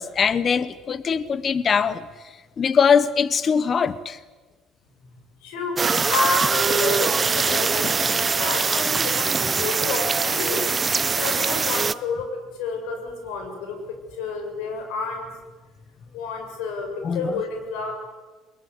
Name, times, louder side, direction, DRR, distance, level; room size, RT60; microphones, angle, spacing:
voice 1, 0.0-2.0 2.6-4.2 7.8-7.9 17.0-17.3, left 6 dB, 40° left, 16 dB, 1.0 m, -21 dB
voice 2, 5.4-5.8 6.1-10.7 11.2-15.3 16.1-17.9, left 4 dB, 85° left, 4 dB, 7.2 m, -30 dB
sound 1, 5.8-11.9, right 5 dB, 25° right, 0.7 m, -22 dB
22.0 x 21.0 x 9.6 m, 1.3 s
supercardioid pair, 100°, 0 cm